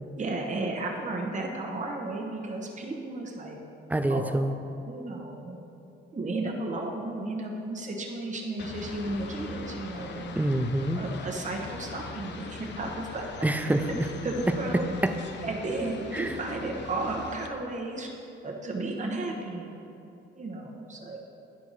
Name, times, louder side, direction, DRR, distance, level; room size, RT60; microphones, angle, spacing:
voice 1, 0.1-3.6 4.1-4.3 4.9-5.6 6.1-10.4 11.0-13.3 14.2-14.8 15.4-18.1 18.4-19.7 20.4-21.2, right 2 dB, 40° right, 0 dB, 1.2 m, -33 dB
voice 2, 3.9-4.5 10.4-11.0 13.4-14.1 15.0-15.1 16.1-16.3, right 1 dB, 10° right, 8 dB, 0.4 m, -26 dB
sound 1, 8.6-17.5, left 5 dB, 65° left, 0.6 m, -41 dB
10.5 x 4.6 x 4.1 m, 2.7 s
cardioid pair, 90°, 20 cm